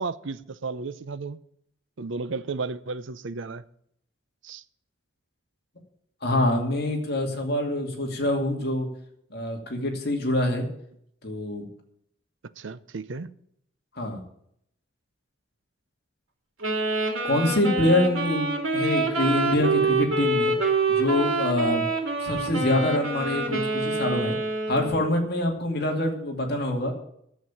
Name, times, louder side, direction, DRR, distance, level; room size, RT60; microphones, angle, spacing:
voice 1, 0.0-1.4 2.0-3.6 4.4-4.6 12.6-13.3 22.7-22.9 23.3-23.5, right 4 dB, 65° right, 0.6 m, -33 dB
voice 2, 6.2-8.9 9.3-10.7 11.2-11.6 14.0-14.2 17.2-18.5 18.7-20.5 20.9-21.9 22.2-24.3 24.7-26.9, left 1 dB, 50° left, 2.4 m, -25 dB
Wind instrument woodwind instrument, 16.6-25.1, right 3 dB, 85° right, 3.0 m, -26 dB
11.0 x 7.5 x 8.8 m
head